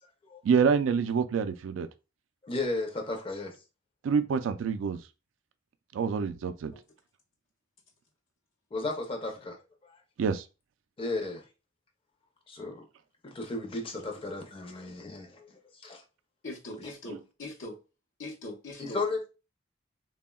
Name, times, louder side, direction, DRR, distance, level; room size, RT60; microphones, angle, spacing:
voice 1, 0.4-1.9 4.0-5.0 5.9-6.7 10.2-10.4, right 6 dB, 85° right, 0.3 m, -26 dB
voice 2, 2.4-3.5 8.7-9.6 9.8-10.0 11.0-11.5 12.5-12.8 13.2-15.5 15.7-16.0 16.8-16.9 18.8-19.3, left 3 dB, 30° left, 0.5 m, -34 dB
voice 3, 16.4-17.8 18.2-19.0, left 1 dB, 90° left, 0.7 m, -41 dB
3.5 x 2.1 x 2.2 m
head